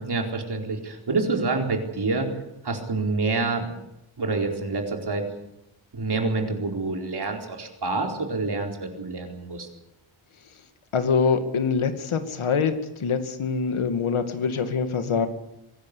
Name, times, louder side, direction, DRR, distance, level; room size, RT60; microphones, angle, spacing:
voice 1, 0.0-2.3 2.6-3.7 4.2-5.3 5.9-9.7, right 3 dB, 50° right, 2 dB, 4.4 m, -27 dB
voice 2, 10.9-12.7 13.0-15.3, left 5 dB, 80° left, 8 dB, 2.4 m, -24 dB
23.5 x 17.5 x 8.6 m, 0.86 s
wide cardioid pair, 145°, 49 cm